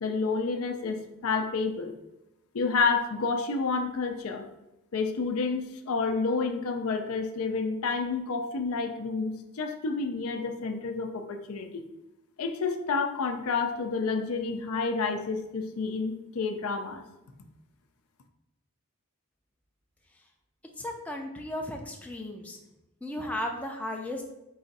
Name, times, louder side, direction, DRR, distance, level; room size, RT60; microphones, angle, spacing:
voice 1, 0.0-1.9 2.5-4.5 4.9-11.8 12.4-17.0, left 4 dB, 75° left, 6 dB, 0.5 m, -29 dB
voice 2, 20.8-22.6 23.0-24.2, left 1 dB, 5° left, 1 dB, 0.4 m, -35 dB
4.8 x 2.5 x 4.0 m, 0.94 s
head